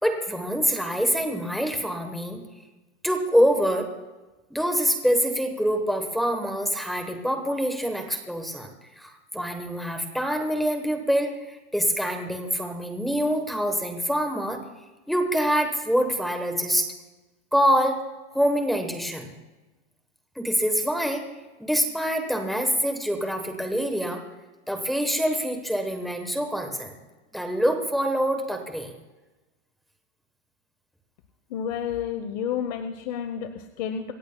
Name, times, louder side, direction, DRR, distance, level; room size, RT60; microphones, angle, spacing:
voice 1, 0.0-2.4 3.0-3.9 4.5-14.6 15.1-16.9 17.5-18.0 18.3-19.3 20.4-21.3 21.6-24.2 24.7-27.0 27.3-28.9, equal, ahead, 5 dB, 1.0 m, -25 dB
voice 2, 31.5-34.1, left 8 dB, 35° left, 8 dB, 0.8 m, -30 dB
26.5 x 14.0 x 2.2 m, 1.1 s
supercardioid pair, 180°, 35 cm